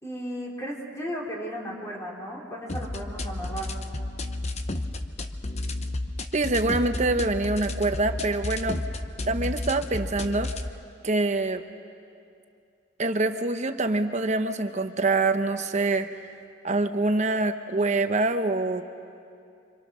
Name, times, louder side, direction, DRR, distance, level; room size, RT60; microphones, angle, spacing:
voice 1, 0.0-3.7, equal, 15° left, -2 dB, 3.9 m, -35 dB
sound 1, 2.7-10.7, left 2 dB, 35° left, 0.9 m, -32 dB
voice 2, 6.3-8.8 9.3-10.5 11.0-11.6 13.0-16.1 16.6-18.8, right 2 dB, 40° right, 8 dB, 0.9 m, -25 dB
26.5 x 26.0 x 6.3 m, 2.5 s
head